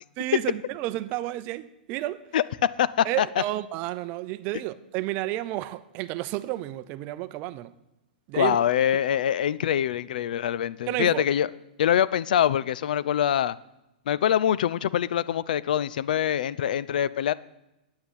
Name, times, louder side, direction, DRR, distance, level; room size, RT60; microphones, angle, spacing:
voice 1, 0.2-2.2 3.0-7.7 8.3-8.6 10.9-11.2, right 16 dB, 35° right, 0.6 m, -31 dB
voice 2, 2.8-3.4 8.3-11.5 11.8-13.6 14.1-17.3, left 10 dB, 70° left, 0.5 m, -24 dB
9.5 x 7.0 x 8.8 m
hypercardioid pair, 150°, 5 cm